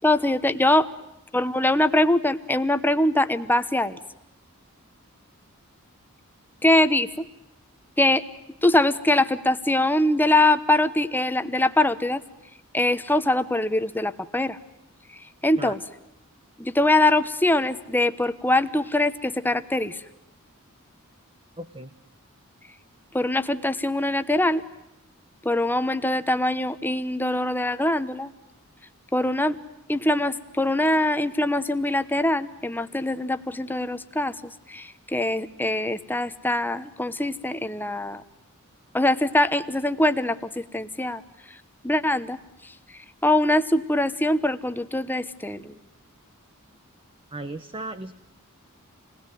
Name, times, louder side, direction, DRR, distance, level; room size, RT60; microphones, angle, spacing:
voice 1, 0.0-0.9 1.3-4.0 6.6-7.1 8.0-8.2 8.6-12.2 12.7-14.6 15.4-15.8 16.6-20.0 23.1-24.6 25.4-28.3 29.1-29.6 29.9-34.3 34.7-38.2 38.9-41.2 41.8-42.4 42.6-42.7 43.2-45.7, left 1 dB, 10° left, 11 dB, 1.0 m, -23 dB
voice 2, 21.6-21.9 47.3-48.1, right 2 dB, 25° right, 10 dB, 1.0 m, -36 dB
28.5 x 20.5 x 9.3 m, 0.91 s
head